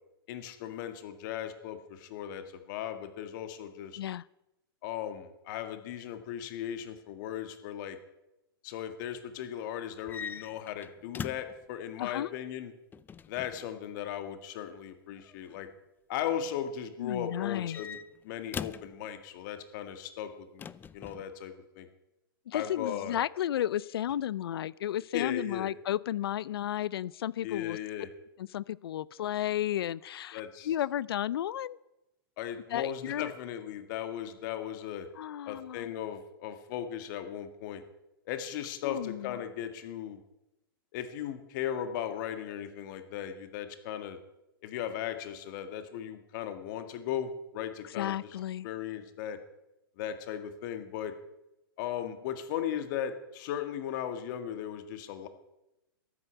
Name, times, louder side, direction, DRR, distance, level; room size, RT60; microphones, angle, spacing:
voice 1, 0.3-4.0 4.8-8.0 8.6-12.7 13.3-15.7 16.1-18.0 18.2-21.9 22.5-23.2 25.1-25.7 27.4-28.1 30.3-30.7 32.4-35.1 35.4-37.8 38.3-40.2 40.9-44.2 44.6-48.2 48.6-49.4 50.0-51.1 51.8-55.3, left 10 dB, 55° left, 8 dB, 1.8 m, -37 dB
sound 1, 10.0-11.6 12.9-13.7 15.2-15.6 17.4-19.0 20.6-21.2, left 7 dB, 15° left, 0.5 m, -42 dB
voice 2, 12.0-12.3 17.0-17.8 22.5-27.8 28.4-31.8 32.7-33.3 35.2-35.9 38.8-39.4 47.9-48.7, left 11 dB, 80° left, 22 dB, 0.5 m, -33 dB
13.5 x 9.9 x 8.2 m, 0.92 s
hypercardioid pair, 125°, 13 cm